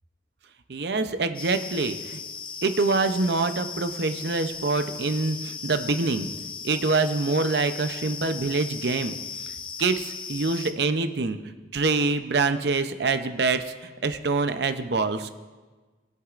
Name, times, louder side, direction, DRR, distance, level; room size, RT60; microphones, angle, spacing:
voice 1, 0.7-2.2 2.6-6.3 6.6-9.2 9.8-11.4 11.7-13.7 14.0-15.3, right 3 dB, 60° right, 9 dB, 0.6 m, -25 dB
sound 1, 1.3-10.7, left 5 dB, 30° left, 0.6 m, -37 dB
21.0 x 8.1 x 2.5 m, 1.3 s
head